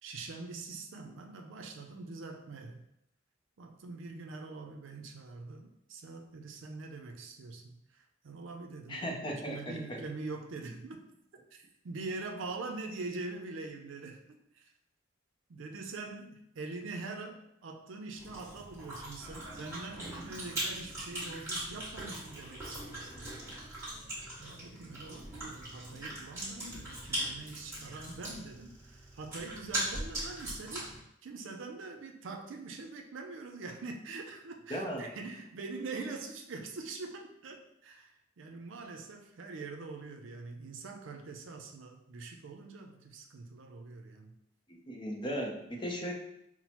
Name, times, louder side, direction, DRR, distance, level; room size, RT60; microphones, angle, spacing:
voice 1, 0.0-2.8 3.6-7.6 7.9-11.0 11.5-14.2 14.5-14.7 15.5-23.6 24.4-30.9 31.2-44.3, right 3 dB, 75° right, 4 dB, 0.5 m, -44 dB
voice 2, 8.9-10.0 34.7-35.1 44.7-46.1, equal, 25° left, 0 dB, 0.5 m, -37 dB
Chewing mastication, 18.2-31.0, right 1 dB, 15° right, 1.4 m, -40 dB
5.8 x 2.0 x 2.9 m, 0.79 s
head